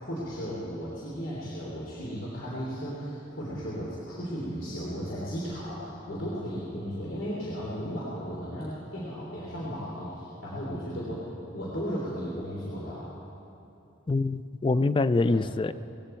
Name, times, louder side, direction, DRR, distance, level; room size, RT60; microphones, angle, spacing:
voice 1, 0.0-11.2 11.5-13.1 15.2-15.4, equal, 85° left, -6 dB, 3.2 m, -35 dB
voice 2, 14.1-15.7, left 3 dB, 25° left, 15 dB, 0.3 m, -25 dB
19.5 x 16.0 x 4.5 m, 2.7 s
head